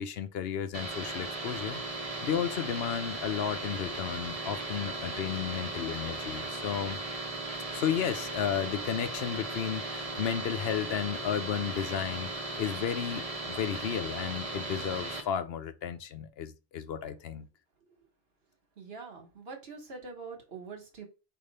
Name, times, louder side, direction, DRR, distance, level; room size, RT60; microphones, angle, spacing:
voice 1, 0.0-1.8 2.2-7.0 7.7-17.5, left 8 dB, 75° left, 0.8 m, -33 dB
sound 1, 0.7-15.2, right 2 dB, 35° right, 1.1 m, -37 dB
voice 2, 18.8-21.1, right 4 dB, 70° right, 1.5 m, -44 dB
5.0 x 2.6 x 4.0 m
omnidirectional pair, 1.1 m